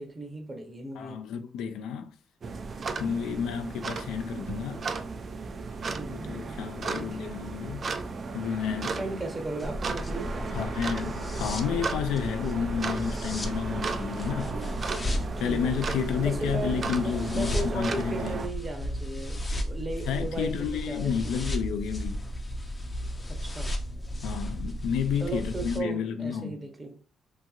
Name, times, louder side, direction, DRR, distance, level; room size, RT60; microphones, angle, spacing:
voice 1, 0.0-1.2 6.0-7.3 8.9-10.7 14.5-21.2 23.3-23.7 25.2-27.0, right 2 dB, 25° right, 0.8 m, -37 dB
voice 2, 1.0-2.1 3.0-4.8 6.1-7.9 8.3-9.0 10.5-14.6 15.4-18.4 20.1-22.2 24.2-26.6, left 7 dB, 85° left, 0.3 m, -31 dB
sound 1, 2.4-18.5, right 4 dB, 45° right, 0.3 m, -35 dB
sound 2, 9.6-25.8, equal, 25° left, 0.5 m, -34 dB
2.9 x 2.5 x 2.4 m
cardioid pair, 90°, 0 cm